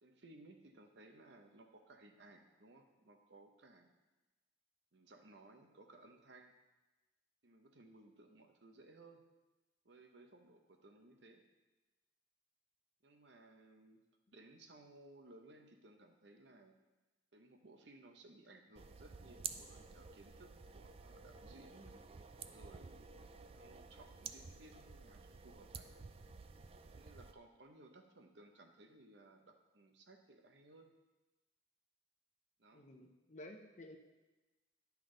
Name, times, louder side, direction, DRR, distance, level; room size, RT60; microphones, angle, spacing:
voice 1, 0.0-3.9 4.9-6.6 7.4-9.3 9.8-11.4 13.0-16.7 17.3-22.0 22.5-23.1 23.5-25.9 26.9-30.9 32.6-32.9, right 2 dB, 70° right, 5 dB, 0.9 m, -61 dB
sound 1, 18.7-27.3, right 6 dB, 30° right, 0.3 m, -51 dB
voice 2, 32.7-34.0, left 1 dB, 40° left, 4 dB, 0.8 m, -53 dB
10.5 x 5.8 x 3.9 m, 1.1 s
head